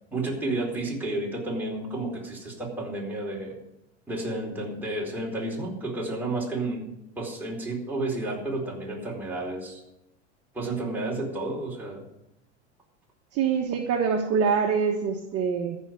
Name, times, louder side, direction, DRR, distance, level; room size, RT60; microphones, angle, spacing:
voice 1, 0.1-3.6 4.1-6.8 7.2-9.8 10.5-12.0, right 2 dB, 5° right, -3 dB, 4.4 m, -31 dB
voice 2, 13.3-15.8, right 6 dB, 40° right, 2 dB, 1.3 m, -25 dB
14.0 x 5.7 x 9.2 m, 0.90 s
hypercardioid pair, 100°, 36 cm